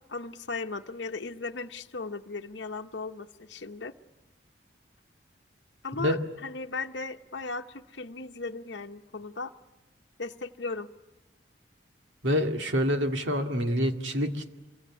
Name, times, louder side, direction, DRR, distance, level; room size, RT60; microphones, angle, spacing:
voice 1, 0.1-3.9 5.8-9.5 10.2-10.9, left 3 dB, 75° left, 5 dB, 1.0 m, -37 dB
voice 2, 12.2-14.5, equal, 80° right, 4 dB, 2.2 m, -27 dB
26.5 x 23.0 x 8.5 m, 1.1 s
head